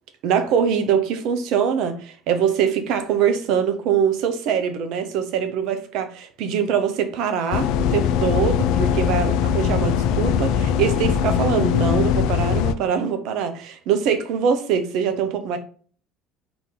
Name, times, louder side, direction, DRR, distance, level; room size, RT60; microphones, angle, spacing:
voice 1, 0.2-15.6, right 7 dB, 70° right, 0.8 m, -23 dB
sound 1, 7.5-12.7, left 8 dB, 70° left, 0.3 m, -21 dB
4.0 x 2.9 x 3.8 m
hypercardioid pair, 75°, 0 cm